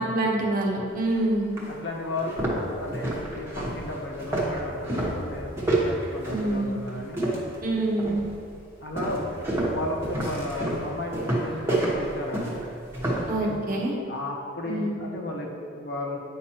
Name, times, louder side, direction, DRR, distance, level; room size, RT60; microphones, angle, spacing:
voice 1, 0.0-1.6 6.3-6.8 7.6-8.2 13.3-13.9 14.6-15.0, right 1 dB, 50° right, -2 dB, 1.1 m, -26 dB
sound 1, 1.0-1.1 1.6-1.7 2.1-7.6 8.0-8.4 9.0-13.3, right 1 dB, 15° right, 1.2 m, -28 dB
voice 2, 1.7-5.6 5.8-7.2 8.8-12.6 13.4-13.5 14.1-16.2, left 2 dB, 60° left, -1 dB, 1.0 m, -34 dB
9.2 x 5.8 x 2.9 m, 2.5 s
head